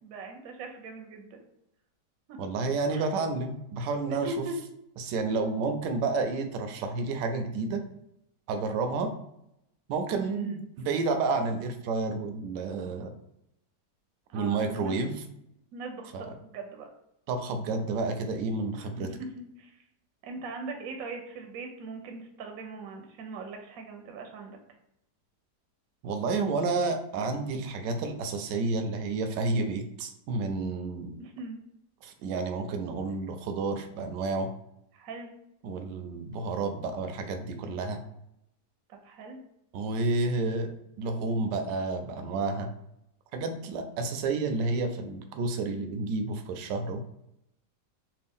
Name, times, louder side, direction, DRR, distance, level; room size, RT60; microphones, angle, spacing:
voice 1, 0.0-1.4 2.3-2.4 2.9-3.1 4.0-4.6 10.1-10.6 14.3-15.0 15.7-16.9 18.7-19.1 19.4-19.7 20.2-24.6 31.2-31.6 34.9-35.3 38.9-39.4, right 3 dB, 65° right, 3 dB, 0.9 m, -40 dB
voice 2, 2.4-4.4 5.0-7.8 8.5-9.1 9.9-13.1 14.3-15.2 16.1-16.3 17.3-19.1 26.0-31.1 32.0-34.5 35.6-38.0 39.7-40.7 41.0-42.7 43.3-47.0, right 3 dB, 85° right, 6 dB, 1.2 m, -30 dB
3.4 x 2.4 x 3.5 m, 0.80 s
omnidirectional pair, 1.8 m